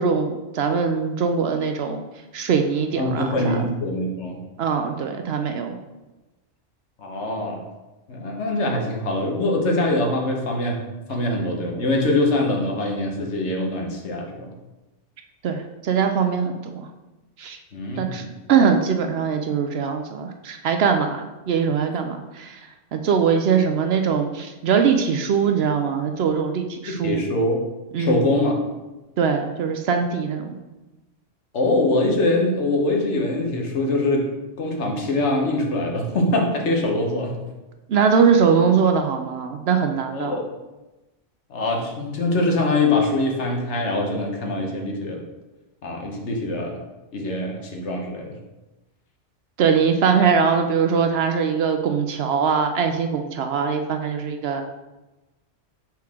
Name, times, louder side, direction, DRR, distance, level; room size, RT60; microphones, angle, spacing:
voice 1, 0.0-2.0 2.3-3.7 4.6-5.8 15.4-16.9 17.4-17.6 18.0-27.2 27.9-28.3 29.2-30.6 37.9-40.3 49.6-54.6, right 6 dB, 65° right, 6 dB, 0.7 m, -22 dB
voice 2, 3.0-4.4 7.0-7.6 8.1-10.8 11.1-14.5 17.7-18.3 26.9-27.6 28.0-28.6 31.5-34.3 34.6-37.4 40.1-40.4 41.5-45.2 45.8-46.8 47.1-48.4, left 2 dB, 70° left, 1 dB, 1.3 m, -23 dB
6.0 x 4.4 x 3.6 m, 1.1 s
omnidirectional pair, 1.2 m